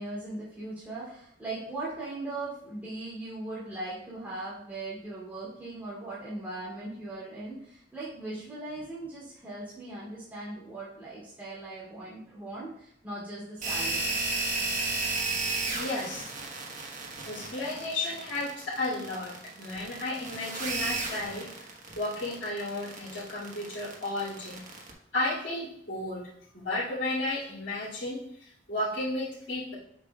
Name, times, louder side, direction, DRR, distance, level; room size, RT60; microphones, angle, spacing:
voice 1, 0.0-14.2, right 2 dB, 10° right, -9 dB, 2.9 m, -39 dB
sound 1, 13.6-24.9, right 3 dB, 45° right, 1.3 m, -33 dB
voice 2, 15.7-16.3 17.2-21.7 21.9-24.6 25.1-29.7, left 2 dB, 70° left, -12 dB, 2.5 m, -33 dB
7.5 x 7.4 x 2.4 m, 0.70 s
head